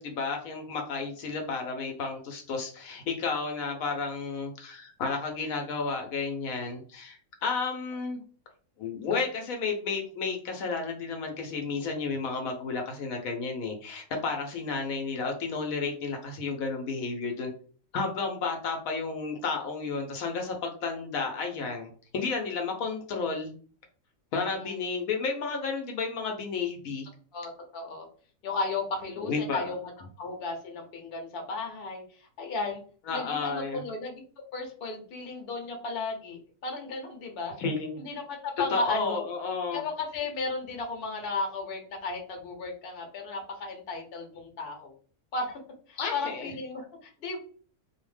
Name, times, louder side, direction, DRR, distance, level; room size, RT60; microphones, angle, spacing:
voice 1, 0.0-8.2 8.8-17.5 17.9-23.5 24.3-27.1 29.2-29.7 33.1-33.8 37.6-38.0 38.7-39.8 46.0-46.5, left 4 dB, 75° left, 3 dB, 1.0 m, -32 dB
voice 2, 24.4-24.7 27.3-28.1 28.4-29.8 30.2-32.8 33.1-34.2 34.5-37.6 38.0-39.2 39.7-44.9 45.3-45.6 45.9-47.4, left 3 dB, 50° left, 2 dB, 0.8 m, -34 dB
2.7 x 2.0 x 3.1 m, 0.42 s
omnidirectional pair, 1.5 m